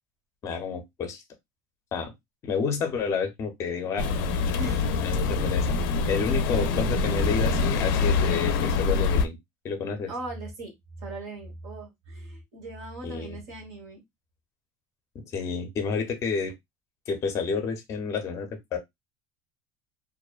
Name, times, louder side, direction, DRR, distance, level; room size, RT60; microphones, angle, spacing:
voice 1, 0.4-1.2 1.9-2.1 2.4-4.1 5.0-5.7 6.1-9.4 9.6-10.1 13.0-13.4 15.3-16.5 17.1-18.8, left 5 dB, 30° left, 0.6 m, -30 dB
sound 1, 4.0-9.3, left 4 dB, 90° left, 0.4 m, -25 dB
voice 2, 4.6-5.0 10.1-10.7 11.0-14.0, right 1 dB, 65° right, 1.3 m, -38 dB
2.6 x 2.1 x 2.3 m
cardioid pair, 165°, 10 cm